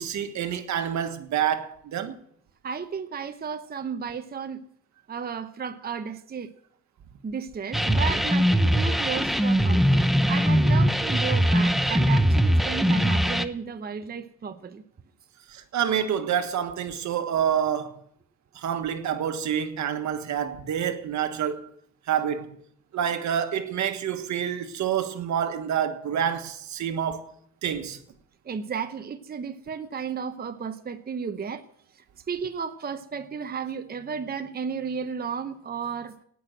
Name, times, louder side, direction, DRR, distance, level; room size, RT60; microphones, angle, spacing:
voice 1, 0.0-2.1 15.5-18.0 18.5-21.7 22.1-22.5 22.9-27.2 27.6-28.0, right 9 dB, 70° right, 1.4 m, -27 dB
voice 2, 2.6-4.6 5.1-6.5 7.2-14.8 28.4-31.7 31.9-36.1, right 6 dB, 30° right, 0.9 m, -33 dB
sound 1, 7.7-13.4, equal, ahead, 0.8 m, -21 dB
18.0 x 6.3 x 7.7 m
cardioid pair, 90°, 30 cm